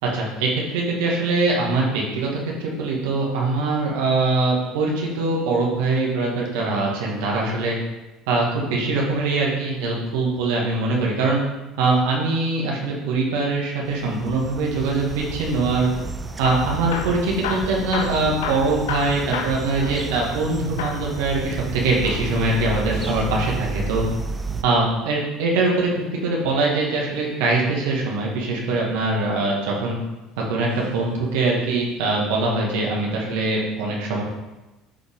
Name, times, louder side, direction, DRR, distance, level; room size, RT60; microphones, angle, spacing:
voice 1, 0.0-7.8 8.3-11.4 11.8-15.9 16.4-24.0 24.6-30.0 30.5-34.2, right 3 dB, 80° right, -2 dB, 1.8 m, -22 dB
sound 1, 13.9-24.6, right 4 dB, 25° right, 0.7 m, -32 dB
Hammer / Drill, 16.3-20.5 20.8-21.1 21.9-23.3 25.1-26.3 28.0-28.5 29.2-30.0 30.7-31.0 31.3-31.4 32.0-32.1, left 6 dB, 85° left, 0.8 m, -33 dB
11.0 x 4.4 x 3.7 m, 1.1 s
hypercardioid pair, 80°, 0 cm